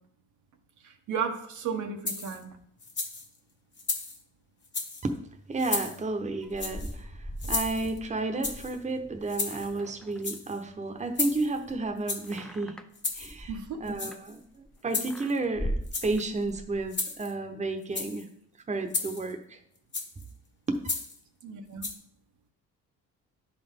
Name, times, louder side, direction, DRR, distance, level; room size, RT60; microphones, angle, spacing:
voice 1, 0.8-2.5 13.5-13.8 21.4-21.9, right 6 dB, 75° right, 4 dB, 1.0 m, -34 dB
sound 1, 2.1-2.4 2.8-3.3 3.8-4.2 4.6-5.0 5.6-6.0 6.6-6.9 7.4-8.0 8.4-8.8 9.3-9.8 10.1-10.6 11.2-11.6 12.1-12.4 13.0-13.3 13.9-14.4 14.9-15.4 15.8-16.3 16.9-17.3 17.8-18.2 18.9-19.3 19.9-20.2 20.9-21.2 21.8-21.9, left 3 dB, 35° left, 1.4 m, -33 dB
voice 2, 5.5-12.8 13.1-15.8 16.0-18.3 18.7-19.6 20.7-20.8, right 2 dB, 25° right, 5 dB, 0.9 m, -32 dB
sound 2, 6.2-10.7 11.0-14.7 15.1-16.9, equal, ahead, 0.5 m, -40 dB
10.5 x 4.0 x 3.6 m, 0.66 s
cardioid pair, 90°, 30 cm